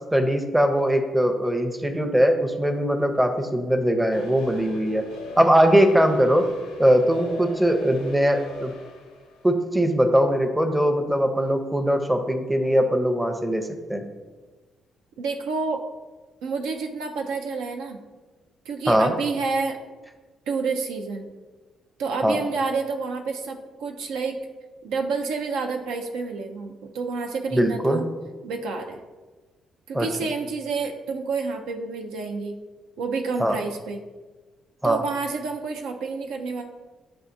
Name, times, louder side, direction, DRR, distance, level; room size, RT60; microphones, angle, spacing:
voice 1, 0.1-5.0 5.4-6.5 6.8-8.7 9.4-14.0 18.9-19.1 22.2-22.4 27.5-28.0 29.9-30.1 33.4-33.6 34.8-35.0, equal, 10° right, 5 dB, 0.6 m, -21 dB
sound 1, 4.1-9.4, left 3 dB, 90° left, 0.6 m, -42 dB
voice 2, 15.2-15.8 16.4-18.0 18.7-19.8 20.5-21.2 22.0-24.4 24.8-28.0 28.4-29.0 29.9-32.6 33.0-34.0 34.8-36.6, right 4 dB, 80° right, 3 dB, 0.4 m, -29 dB
7.5 x 2.5 x 2.5 m, 1.3 s
hypercardioid pair, 50°, 0 cm